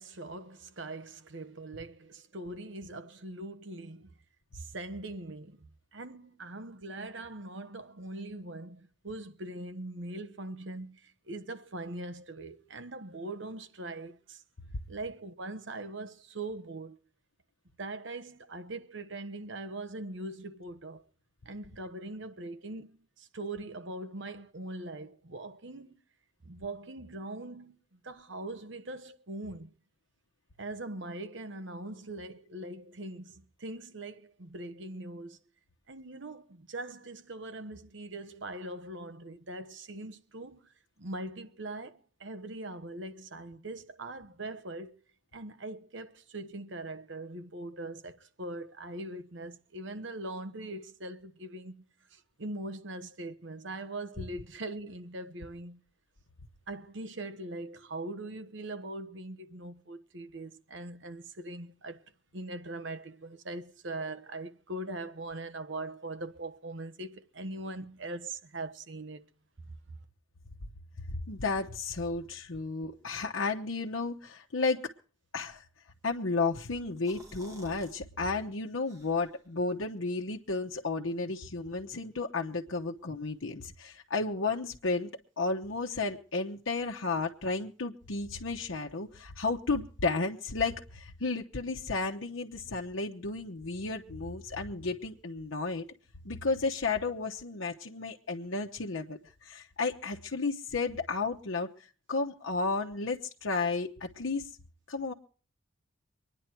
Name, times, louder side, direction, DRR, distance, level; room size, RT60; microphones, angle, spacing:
voice 1, 0.0-4.1 4.5-14.4 14.9-17.0 17.8-21.0 21.4-26.0 26.4-29.7 30.6-35.4 35.9-44.9 45.3-51.8 52.1-55.8 56.7-62.0 62.3-69.2, right 2 dB, 65° right, 1.2 m, -41 dB
voice 2, 71.1-74.9 75.3-75.6 76.0-85.1 85.4-95.8 96.2-104.5 104.9-105.1, left 3 dB, 85° left, 1.0 m, -33 dB
sound 1, 76.8-78.0 78.4-78.5 78.9-79.5, equal, 15° right, 2.5 m, -52 dB
24.0 x 10.0 x 4.5 m
head